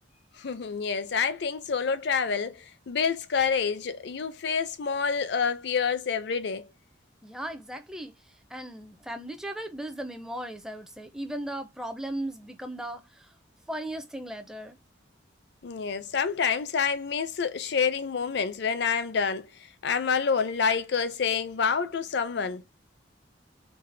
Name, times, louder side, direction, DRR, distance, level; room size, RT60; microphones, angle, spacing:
voice 1, 0.4-6.7 15.6-19.5 19.8-22.6, left 6 dB, 65° left, 0.5 m, -28 dB
voice 2, 7.2-8.1 8.5-13.3 13.7-14.8, right 1 dB, 5° right, 0.4 m, -37 dB
4.0 x 2.1 x 3.2 m
head